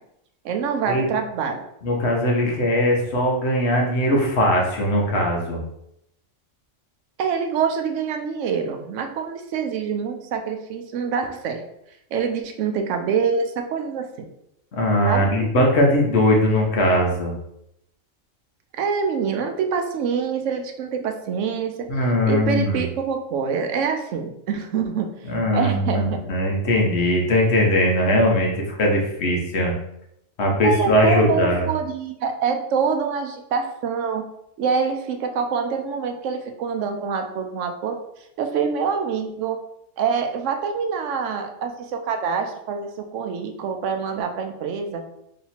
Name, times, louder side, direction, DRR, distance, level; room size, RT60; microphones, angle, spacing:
voice 1, 0.4-1.6 7.2-11.6 12.1-14.3 15.0-15.3 18.8-21.9 22.3-25.1 25.5-26.2 30.6-34.3 34.6-38.0 38.4-39.6 40.0-45.1, right 6 dB, 80° right, 5 dB, 0.9 m, -25 dB
voice 2, 1.8-5.6 14.8-17.3 21.9-22.8 25.3-29.7 30.4-31.7, left 1 dB, 60° left, 0 dB, 1.2 m, -20 dB
3.2 x 2.8 x 4.2 m, 0.79 s
omnidirectional pair, 1.3 m